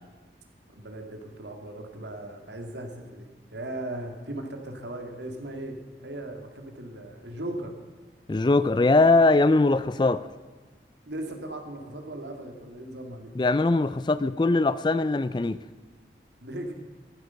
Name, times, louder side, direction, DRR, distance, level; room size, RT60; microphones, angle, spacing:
voice 1, 0.7-7.7 11.1-13.3 16.4-16.7, right 1 dB, 80° right, 4 dB, 2.3 m, -38 dB
voice 2, 8.3-10.2 13.4-15.6, left 2 dB, 25° left, 16 dB, 0.4 m, -21 dB
13.5 x 12.0 x 5.8 m, 1.4 s
head